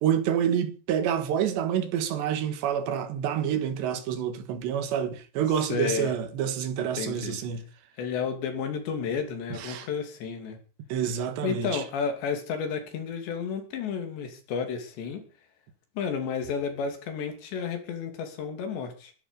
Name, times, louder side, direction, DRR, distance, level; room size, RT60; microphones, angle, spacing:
voice 1, 0.0-7.6 9.5-9.9 10.9-11.8, right 9 dB, 80° right, 3.9 m, -28 dB
voice 2, 5.7-6.1 6.9-7.4 8.0-10.6 11.4-15.2 16.0-19.1, left 6 dB, 80° left, 5.0 m, -31 dB
20.0 x 11.5 x 5.4 m
omnidirectional pair, 4.9 m